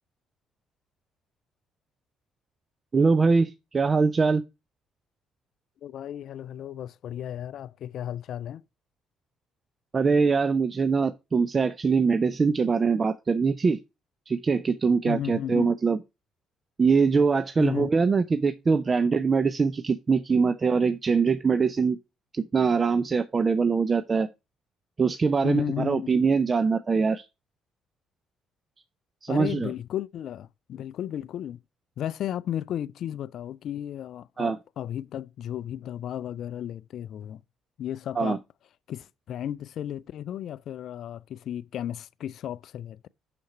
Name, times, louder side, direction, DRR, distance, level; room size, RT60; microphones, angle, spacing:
voice 1, 2.9-4.4 9.9-13.8 14.3-16.0 16.8-22.0 22.3-24.3 25.0-27.3 29.2-29.7 34.4-34.6 38.2-38.4, right 5 dB, 35° right, 0.5 m, -23 dB
voice 2, 5.8-8.6 15.0-15.8 17.6-17.9 25.4-26.1 29.3-31.6 32.0-37.4 37.8-38.4 38.9-43.1, left 10 dB, 55° left, 0.3 m, -34 dB
6.4 x 5.9 x 5.1 m
figure-of-eight pair, 45°, 0 cm